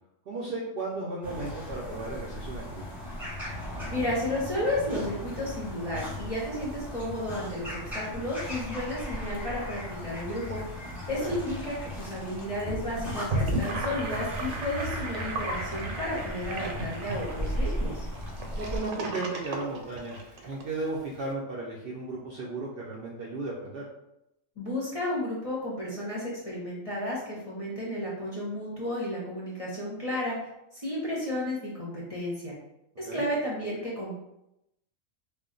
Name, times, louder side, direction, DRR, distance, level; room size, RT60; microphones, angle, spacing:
voice 1, 0.3-2.8 11.2-11.4 18.6-23.8 33.1-33.2, right 2 dB, 60° right, -4 dB, 0.6 m, -35 dB
sound 1, 1.2-18.8, equal, ahead, 1.0 m, -37 dB
voice 2, 3.9-18.0 24.6-32.5 33.0-34.1, left 1 dB, 35° left, -7 dB, 0.6 m, -33 dB
Gurgling / Sink (filling or washing), 13.1-20.6, right 2 dB, 80° right, 1.0 m, -34 dB
2.4 x 2.1 x 3.8 m, 0.86 s
omnidirectional pair, 1.4 m